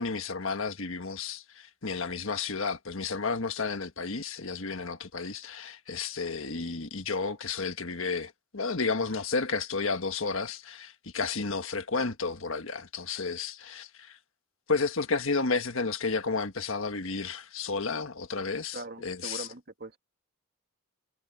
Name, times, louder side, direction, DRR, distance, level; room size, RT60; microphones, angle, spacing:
voice 1, 0.0-14.2 14.7-19.5, left 4 dB, 65° left, 1.5 m, -32 dB
voice 2, 18.7-20.0, right 2 dB, 50° right, 2.4 m, -41 dB
head